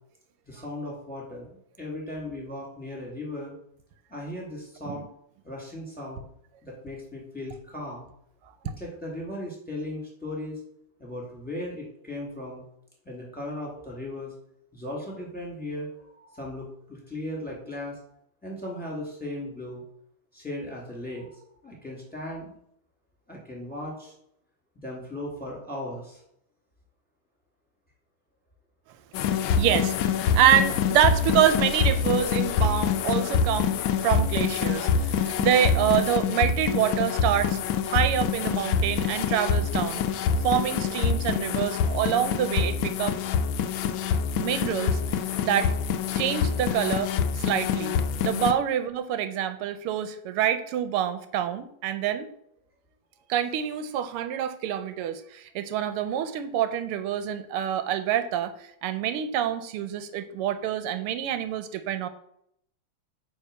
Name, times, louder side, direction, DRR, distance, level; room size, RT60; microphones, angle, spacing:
voice 1, 0.5-3.5 4.1-5.0 5.4-6.2 6.6-8.1 8.8-10.6 11.0-12.6 13.0-14.3 14.7-18.0 18.4-19.8 20.3-22.5 23.3-24.1 24.7-26.2, left 1 dB, 5° left, -3 dB, 2.6 m, -37 dB
sound 1, 29.1-48.5, left 6 dB, 75° left, 1.3 m, -26 dB
voice 2, 29.2-37.6 37.9-40.0 40.4-43.2 44.4-45.0 45.4-45.7 46.1-48.0 48.2-52.3 53.3-62.1, right 10 dB, 90° right, 11 dB, 1.6 m, -26 dB
9.2 x 3.5 x 6.6 m, 0.73 s
omnidirectional pair, 2.4 m